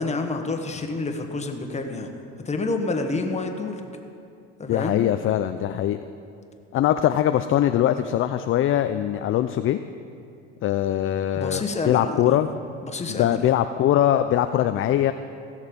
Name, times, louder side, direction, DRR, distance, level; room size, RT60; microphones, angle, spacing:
voice 1, 0.0-2.1 2.4-3.8 4.6-5.1 11.3-12.4 12.8-13.4, left 3 dB, 20° left, 4 dB, 1.4 m, -28 dB
voice 2, 4.7-6.0 6.7-9.8 10.6-12.5 13.1-15.1, left 11 dB, 45° left, 10 dB, 0.5 m, -22 dB
16.5 x 6.6 x 5.3 m, 2.5 s
supercardioid pair, 80°, 30 cm